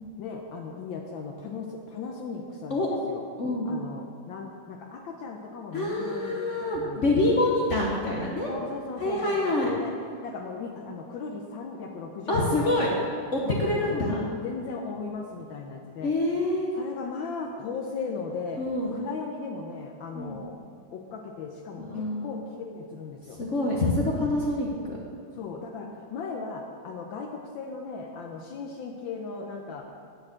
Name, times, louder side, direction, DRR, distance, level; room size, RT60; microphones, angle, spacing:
voice 1, 0.2-3.2 3.6-7.3 8.4-9.9 10.2-13.1 13.4-14.1 14.4-16.1 16.8-18.6 18.9-20.6 20.9-23.4 25.3-29.8, left 4 dB, 75° left, 2 dB, 1.4 m, -37 dB
voice 2, 3.4-3.7 5.7-8.5 9.0-9.7 12.3-12.9 13.3-14.3 16.0-16.7 18.6-19.0 20.1-20.4 21.8-22.4 23.4-25.0, left 2 dB, 50° left, -2 dB, 1.0 m, -26 dB
9.7 x 4.7 x 7.6 m, 2.3 s
omnidirectional pair, 2.2 m